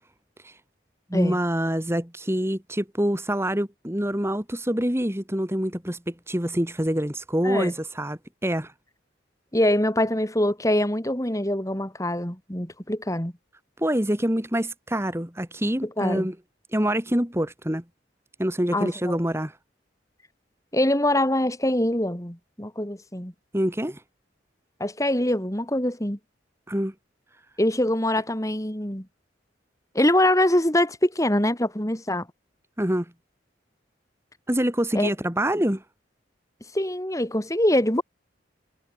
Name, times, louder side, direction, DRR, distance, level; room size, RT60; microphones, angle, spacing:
voice 1, 1.1-8.7 13.8-16.3 16.7-17.8 18.4-19.5 23.5-24.0 26.7-26.9 32.8-33.1 34.5-35.8, equal, 15° right, 3.0 m, -26 dB
voice 2, 9.5-13.3 16.0-16.3 18.7-19.2 20.7-23.3 24.8-26.2 27.6-29.0 29.9-32.3 34.9-35.1 36.7-38.0, left 1 dB, 15° left, 3.4 m, -24 dB
head